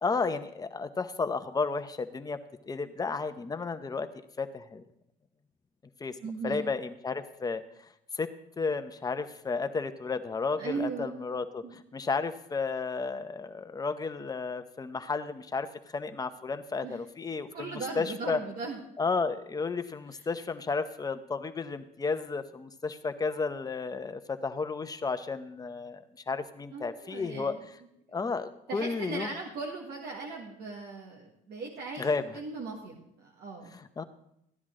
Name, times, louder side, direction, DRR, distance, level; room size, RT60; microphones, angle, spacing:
voice 1, 0.0-2.4 2.7-4.1 4.4-4.8 6.0-6.2 6.4-7.6 8.1-8.3 8.6-11.6 11.9-15.7 15.9-18.4 19.0-27.5 28.1-29.3 32.0-32.2 34.0-34.1, left 4 dB, 20° left, 9 dB, 0.8 m, -32 dB
voice 2, 6.2-6.6 10.6-11.2 11.6-11.8 16.8-17.0 17.5-18.8 20.1-20.3 26.7-27.6 28.2-28.3 28.7-32.1 32.3-33.7, right 4 dB, 70° right, -2 dB, 1.7 m, -38 dB
14.5 x 10.0 x 3.8 m, 0.76 s
cardioid pair, 110°, 17 cm